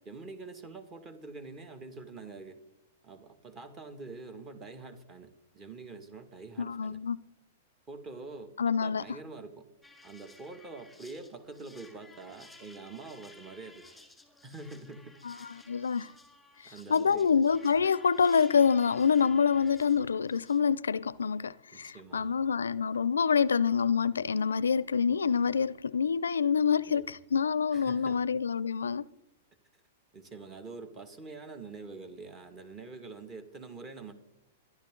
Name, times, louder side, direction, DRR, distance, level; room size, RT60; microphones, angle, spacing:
voice 1, 0.1-2.6 3.0-7.0 7.9-9.7 10.0-13.9 14.4-15.2 16.6-17.3 21.7-22.3 26.9-27.2 27.7-28.2 30.1-34.1, right 3 dB, 25° right, 2.1 m, -45 dB
voice 2, 6.6-7.2 8.6-9.0 15.2-16.1 16.9-29.1, left 6 dB, 85° left, 0.4 m, -26 dB
sound 1, 9.8-20.6, left 2 dB, 5° left, 2.2 m, -56 dB
27.0 x 11.5 x 3.8 m
hypercardioid pair, 115°, 0 cm